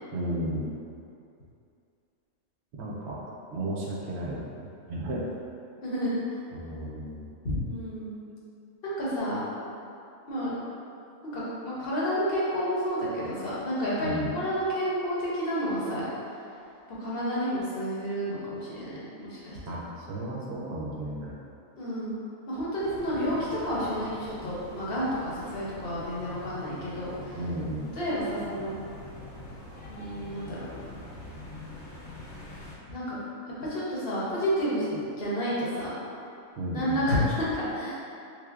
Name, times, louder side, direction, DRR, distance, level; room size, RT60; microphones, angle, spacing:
voice 1, 0.1-0.7 2.8-3.2 3.5-5.2 6.5-7.2 14.0-14.3 19.7-21.4 27.3-27.9 36.6-37.0, right 1 dB, 65° right, -4 dB, 0.7 m, -34 dB
voice 2, 5.8-6.4 7.6-8.1 8.8-9.4 10.3-10.5 11.3-16.1 17.0-19.6 21.8-22.1 22.5-27.4 28.0-28.8 29.9-30.7 32.9-33.2 33.6-35.9 36.7-38.0, equal, 50° left, -8 dB, 0.9 m, -30 dB
sound 1, 22.8-32.7, left 1 dB, 75° left, 1.2 m, -44 dB
3.3 x 3.3 x 2.4 m, 2.6 s
omnidirectional pair, 1.4 m